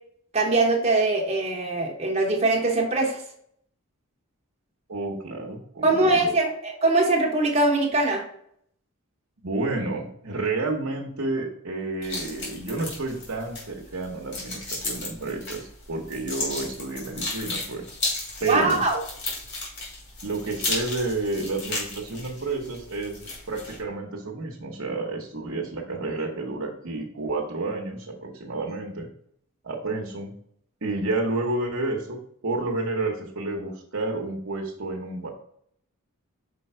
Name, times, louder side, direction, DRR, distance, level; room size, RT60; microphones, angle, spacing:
voice 1, 0.3-3.2 5.8-8.2 18.5-19.0, right 2 dB, 30° right, 0 dB, 0.9 m, -22 dB
voice 2, 4.9-6.3 9.4-17.9 18.4-18.8 20.2-23.1 23.5-29.1 29.6-30.4 30.8-35.3, right 2 dB, 70° right, -1 dB, 1.1 m, -30 dB
sound 1, 12.0-23.8, left 2 dB, 55° left, 2.7 m, -34 dB
5.6 x 4.5 x 4.4 m, 0.67 s
head